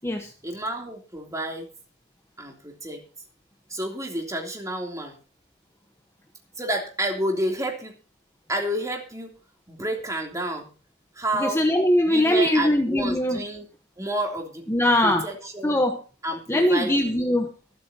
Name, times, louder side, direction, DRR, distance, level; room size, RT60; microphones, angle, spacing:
voice 1, 0.4-1.7 2.4-3.0 3.7-5.2 6.6-8.0 8.5-9.3 9.7-10.7 11.1-11.6 12.0-13.6 14.0-14.7 15.0-15.8 16.2-17.2, right 1 dB, 15° right, 1 dB, 3.1 m, -30 dB
voice 2, 11.4-13.4 14.7-15.3 15.6-16.0 16.5-17.5, left 1 dB, 15° left, 4 dB, 1.1 m, -21 dB
24.5 x 8.6 x 2.9 m, 0.36 s
head